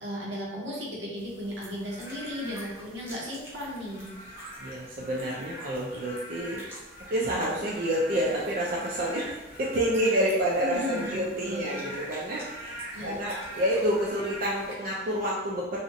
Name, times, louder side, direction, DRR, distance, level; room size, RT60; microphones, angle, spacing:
voice 1, 0.0-4.0 10.6-11.8 12.9-13.3, left 1 dB, 75° right, -4 dB, 0.7 m, -35 dB
sound 1, 1.2-14.7, equal, 10° right, 0.6 m, -50 dB
Frog / Rain, 1.8-15.2, equal, 45° left, 0.7 m, -44 dB
voice 2, 4.6-6.6 7.1-15.8, equal, 50° right, -5 dB, 0.3 m, -28 dB
2.5 x 2.0 x 2.5 m, 1.1 s
head